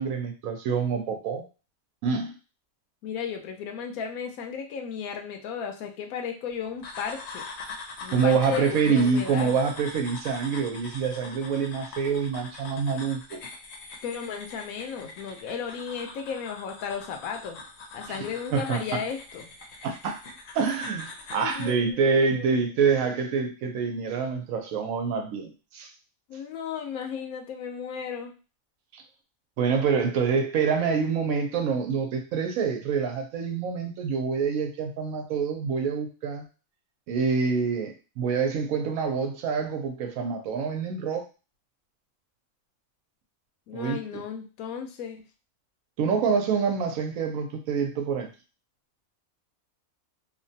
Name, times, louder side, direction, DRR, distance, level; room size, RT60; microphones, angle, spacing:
voice 1, 0.0-1.4 2.0-2.3 8.1-13.4 18.1-18.2 18.5-19.0 19.8-20.2 20.5-25.9 28.9-29.0 29.6-36.5 37.1-41.2 43.7-44.2 46.0-48.3, right 5 dB, 75° right, 4 dB, 1.0 m, -26 dB
voice 2, 3.0-7.5 8.0-9.6 14.0-17.6 17.9-19.5 21.4-22.5 26.3-28.3 43.7-45.2, left 7 dB, 80° left, 4 dB, 1.0 m, -34 dB
sound 1, 6.8-21.8, left 3 dB, 60° left, 0.8 m, -43 dB
2.9 x 2.2 x 2.7 m, 0.33 s
omnidirectional pair, 1.5 m